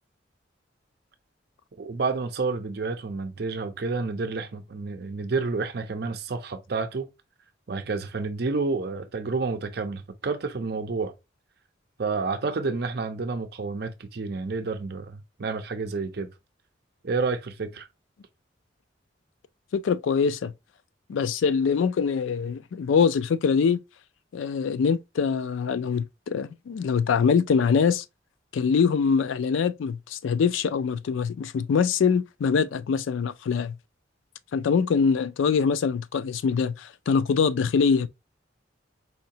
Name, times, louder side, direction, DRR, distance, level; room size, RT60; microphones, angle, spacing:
voice 1, 1.8-7.1 7.7-11.1 12.0-16.3 17.0-17.9, right 4 dB, 55° right, 0.5 m, -29 dB
voice 2, 19.7-20.5 21.1-23.8 24.3-28.0 28.5-33.8 34.5-38.1, left 6 dB, 80° left, 0.3 m, -24 dB
4.3 x 2.8 x 2.7 m
head